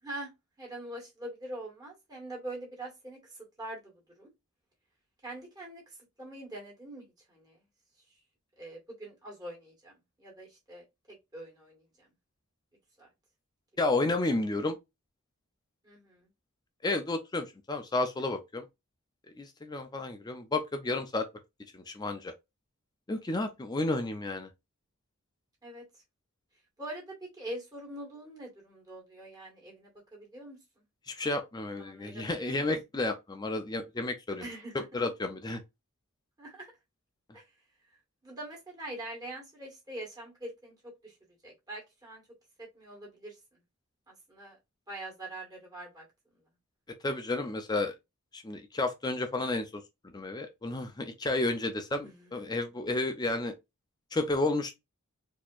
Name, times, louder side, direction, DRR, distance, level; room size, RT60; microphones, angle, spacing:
voice 1, 0.6-3.9 4.2-4.3 5.2-7.6 8.6-9.9 10.2-10.8 11.3-12.1 13.0-13.1 15.8-16.3 25.6-25.8 26.8-30.8 31.8-32.6 34.4-35.0 36.4-36.7 37.3-37.4 38.2-41.1 41.4-42.2 42.6-43.3 44.1-44.6 44.9-46.0 52.0-52.6, right 1 dB, 15° right, 1.6 m, -44 dB
voice 2, 13.8-14.8 16.8-18.6 19.4-21.3 21.7-22.3 23.1-24.5 31.1-34.5 34.9-35.6 47.0-47.9 48.3-49.8 50.1-53.5 54.1-54.7, left 2 dB, 20° left, 0.4 m, -31 dB
4.2 x 2.8 x 2.4 m
head